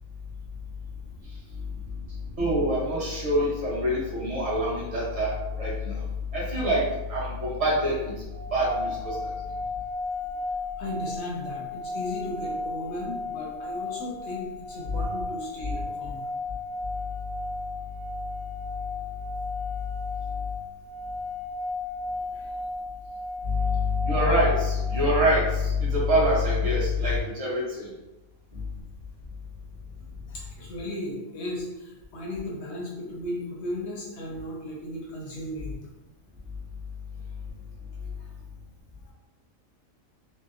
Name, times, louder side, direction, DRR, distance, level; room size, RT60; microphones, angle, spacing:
voice 1, 2.4-6.0 6.3-6.8 7.1-8.1 8.5-9.1 14.9-15.0 23.4-27.9, left 1 dB, 35° right, -6 dB, 0.7 m, -25 dB
sound 1, 8.3-25.4, left 2 dB, 85° right, 0.4 m, -35 dB
voice 2, 10.8-16.3 22.3-22.6 28.5-28.6 30.3-35.8 38.0-38.3 39.0-39.1, left 1 dB, 60° left, -3 dB, 0.8 m, -36 dB
2.7 x 2.1 x 2.4 m, 1.1 s
omnidirectional pair, 1.5 m